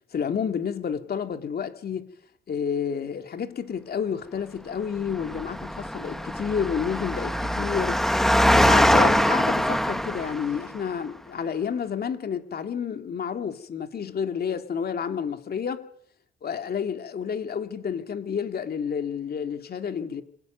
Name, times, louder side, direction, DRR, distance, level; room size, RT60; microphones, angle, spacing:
voice 1, 0.1-2.1 2.5-8.3 8.5-15.8 16.4-20.2, left 7 dB, 50° left, 2.7 m, -30 dB
Engine, 5.1-10.7, equal, ahead, 1.4 m, -23 dB
25.5 x 16.0 x 9.4 m
cardioid pair, 90°, 20 cm